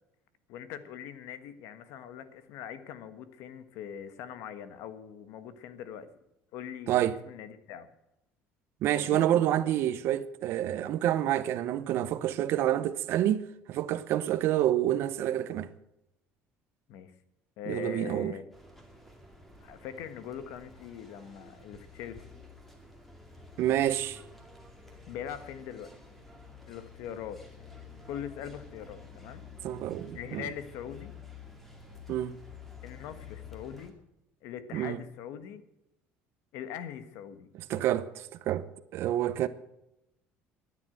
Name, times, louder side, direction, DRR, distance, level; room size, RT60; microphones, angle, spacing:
voice 1, 0.5-6.1 6.5-7.9 8.9-9.2 16.9-17.1 17.6-18.5 19.6-22.2 25.1-25.9 26.7-27.4 28.1-29.4 30.1-31.1 32.8-34.0 34.4-35.6 36.5-37.5, left 9 dB, 70° left, 1.4 m, -42 dB
voice 2, 8.8-15.7 17.7-18.3 23.6-24.2 29.6-30.4 32.1-32.4 34.7-35.0 37.7-38.6 38.9-39.5, right 12 dB, 55° right, 0.8 m, -28 dB
sound 1, 18.5-33.9, left 4 dB, 5° left, 2.3 m, -50 dB
13.0 x 9.9 x 7.9 m
cardioid pair, 145°, 5 cm